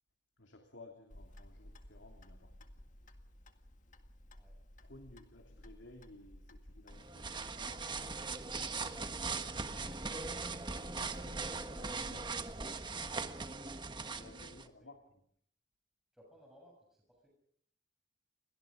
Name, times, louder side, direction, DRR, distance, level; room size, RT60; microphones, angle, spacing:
voice 1, 0.4-2.6 4.8-7.9 10.9-12.3 14.2-15.0, left 2 dB, 75° left, 4 dB, 3.0 m, -57 dB
Clock, 1.1-13.2, left 1 dB, 40° left, 2.0 m, -55 dB
sound 1, 6.9-14.7, right 4 dB, 25° right, 1.4 m, -40 dB
voice 2, 13.9-14.9 16.1-17.3, equal, ahead, -1 dB, 6.9 m, -63 dB
30.0 x 23.0 x 5.1 m, 0.66 s
head